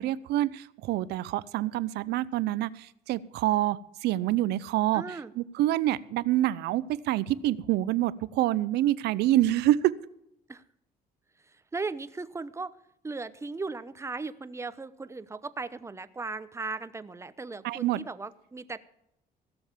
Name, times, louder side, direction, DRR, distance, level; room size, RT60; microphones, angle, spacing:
voice 1, 0.0-9.9 17.6-18.0, right 14 dB, 80° right, 17 dB, 0.7 m, -27 dB
voice 2, 4.9-5.3 10.5-10.6 11.4-12.7 13.0-18.8, right 3 dB, 15° right, 14 dB, 0.8 m, -37 dB
16.5 x 7.1 x 7.2 m, 0.76 s
cardioid pair, 110°, 17 cm